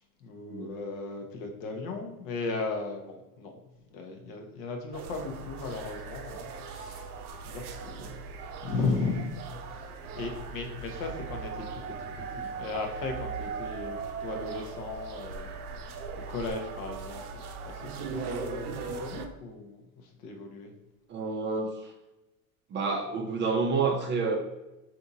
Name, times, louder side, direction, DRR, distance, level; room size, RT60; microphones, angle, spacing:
voice 1, 0.2-3.6 3.9-8.1 8.6-15.5 16.3-20.7, left 3 dB, 65° left, 3 dB, 0.9 m, -36 dB
sound 1, 4.9-19.3, right 5 dB, 75° right, 0.6 m, -39 dB
voice 2, 21.1-21.9 22.7-24.3, right 4 dB, 25° right, 2 dB, 0.4 m, -29 dB
3.4 x 2.8 x 2.6 m, 1.0 s
hypercardioid pair, 95°, 44 cm